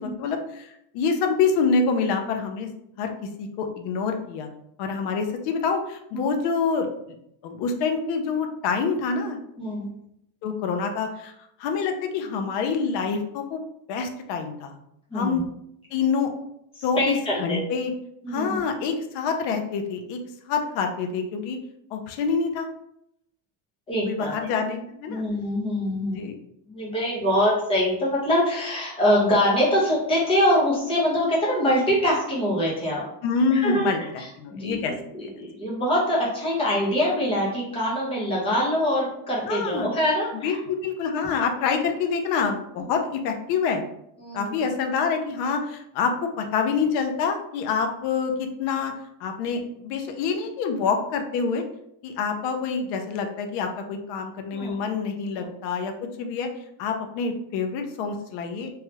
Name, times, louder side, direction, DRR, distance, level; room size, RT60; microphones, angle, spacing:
voice 1, 0.0-2.7 3.0-3.1 3.4-4.5 4.8-6.9 7.4-9.4 10.4-11.3 11.6-13.6 13.9-14.8 15.1-15.4 15.9-16.3 16.8-17.9 18.3-21.6 21.9-22.7 24.1-25.2 26.1-26.3 33.2-34.0 34.4-34.9 35.2-35.5 39.4-39.9 40.4-43.8 44.3-48.9 49.2-51.6 52.0-56.5 56.8-58.7, left 5 dB, 60° left, 5 dB, 0.5 m, -26 dB
voice 2, 9.6-9.9 15.1-15.4 16.8-17.8 18.2-18.9 23.9-24.5 25.1-26.3 26.7-33.0 33.5-40.6 44.2-44.6 54.5-54.8 55.4-55.5, equal, 10° left, -5 dB, 0.6 m, -24 dB
3.2 x 2.3 x 2.8 m, 0.77 s
cardioid pair, 180°, 50 cm